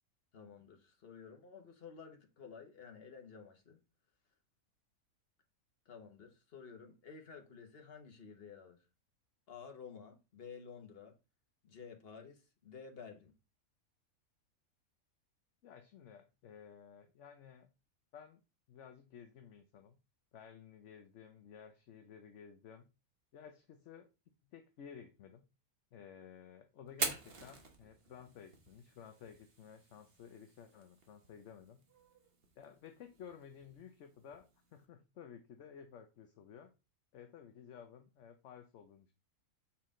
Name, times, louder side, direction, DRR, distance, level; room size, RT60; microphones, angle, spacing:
voice 1, 0.3-3.8 5.8-8.8 9.5-11.1 11.6-13.3, left 6 dB, 45° left, 1.3 m, -52 dB
voice 2, 15.6-17.7 18.1-18.4 18.7-20.0 20.3-22.9 23.3-24.1 24.5-25.4 25.9-31.8 32.6-36.7 37.1-39.1, left 7 dB, 60° left, 1.0 m, -54 dB
Fire, 26.9-34.8, right 4 dB, 40° right, 1.4 m, -46 dB
7.1 x 4.8 x 3.7 m
omnidirectional pair, 1.5 m